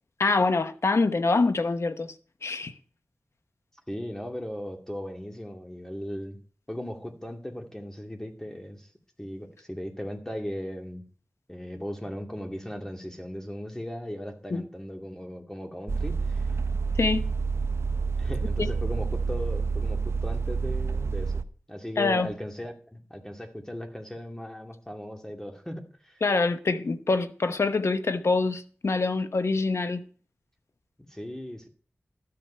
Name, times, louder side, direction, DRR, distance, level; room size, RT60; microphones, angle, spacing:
voice 1, 0.2-2.1 2.4-2.7 14.5-14.6 17.0-17.2 22.0-22.3 26.2-30.0, left 3 dB, 70° left, 0.9 m, -25 dB
voice 2, 3.9-6.4 6.7-8.9 9.2-11.0 11.5-16.5 18.2-21.4 21.7-26.2 31.0-31.7, equal, 10° left, 2.3 m, -37 dB
sound 1, 15.9-21.4, right 4 dB, 65° right, 0.6 m, -28 dB
12.5 x 7.8 x 5.6 m
wide cardioid pair, 55°, 5 cm